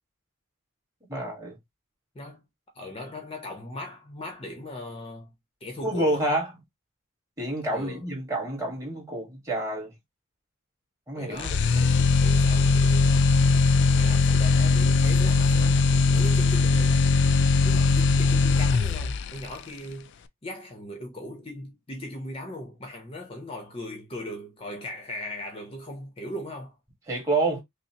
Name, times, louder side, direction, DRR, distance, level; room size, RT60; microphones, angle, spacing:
voice 1, 1.1-1.6 5.8-6.5 7.4-9.9 11.1-11.6 27.1-27.6, right 2 dB, 15° right, 1.6 m, -28 dB
voice 2, 2.1-2.5 2.7-5.3 5.6-6.3 7.7-8.1 11.1-13.3 13.9-17.0 17.6-20.1 20.4-26.8, left 1 dB, 25° left, 0.7 m, -39 dB
sound 1, 11.4-19.4, left 4 dB, 55° left, 0.3 m, -20 dB
5.4 x 2.0 x 2.8 m
head